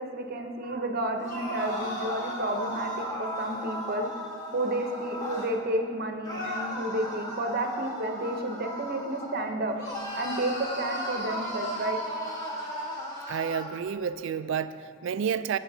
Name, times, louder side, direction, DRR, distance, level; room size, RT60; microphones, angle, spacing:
voice 1, 0.0-4.1 4.5-9.7 10.2-12.0, right 1 dB, 45° right, 4 dB, 0.8 m, -31 dB
sound 1, 1.2-5.5 6.2-9.4 9.8-13.7, equal, 15° left, 1.3 m, -35 dB
voice 2, 13.3-15.6, right 7 dB, 60° right, 13 dB, 0.3 m, -30 dB
15.0 x 7.2 x 2.7 m, 2.2 s
head